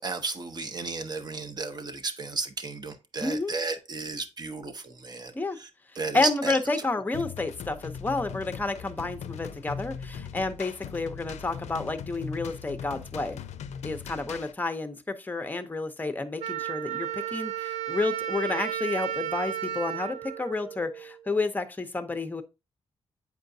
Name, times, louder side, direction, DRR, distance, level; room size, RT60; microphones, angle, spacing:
voice 1, 0.0-5.3 5.6-5.7 6.0-6.5, right 3 dB, 35° right, 0.8 m, -33 dB
voice 2, 3.2-3.5 5.3-5.6 6.1-13.4 13.8-22.4, left 3 dB, 15° left, 0.6 m, -30 dB
sound 1, 7.1-14.5, left 7 dB, 85° left, 0.4 m, -39 dB
Wind instrument woodwind instrument, 16.4-21.2, right 12 dB, 85° right, 0.4 m, -33 dB
7.9 x 4.7 x 2.6 m
wide cardioid pair, 120°, 11 cm